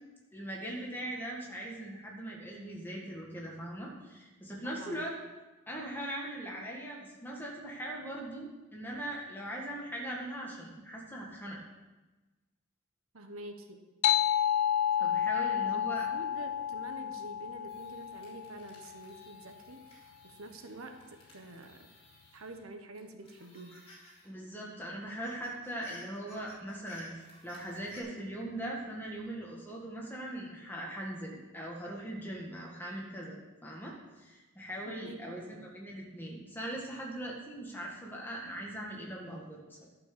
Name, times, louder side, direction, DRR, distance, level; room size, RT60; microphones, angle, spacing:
voice 1, 0.3-5.1 5.7-11.6 15.0-16.1 24.2-27.2 27.4-39.9, right 1 dB, 10° left, -3 dB, 1.8 m, -40 dB
voice 2, 4.6-5.1 13.1-13.8 15.4-21.9 22.3-23.8 34.8-35.6, right 2 dB, 75° right, 6 dB, 1.0 m, -47 dB
sound 1, 14.0-19.0, left 10 dB, 75° left, 0.4 m, -30 dB
sound 2, 17.7-22.6 22.9-24.3 24.6-24.7 24.9-28.0, left 1 dB, 25° left, 3.2 m, -56 dB
11.5 x 6.1 x 6.7 m, 1.2 s
head